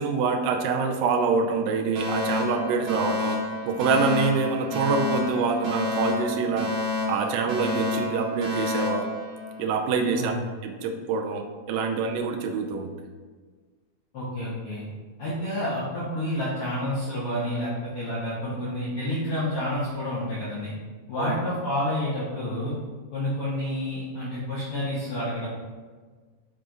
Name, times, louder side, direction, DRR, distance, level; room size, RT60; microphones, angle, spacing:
voice 1, 0.0-3.4 3.7-6.7 7.1-9.1 9.6-10.4 10.6-12.9 21.1-21.4, right 4 dB, 85° right, 3 dB, 2.0 m, -26 dB
Alarm, 1.9-10.0, left 2 dB, 35° right, 1.6 m, -29 dB
voice 2, 14.1-14.8 15.2-20.7 21.1-22.7 23.1-25.5, left 1 dB, 85° left, -9 dB, 1.2 m, -29 dB
6.9 x 4.8 x 3.8 m, 1.4 s
omnidirectional pair, 4.6 m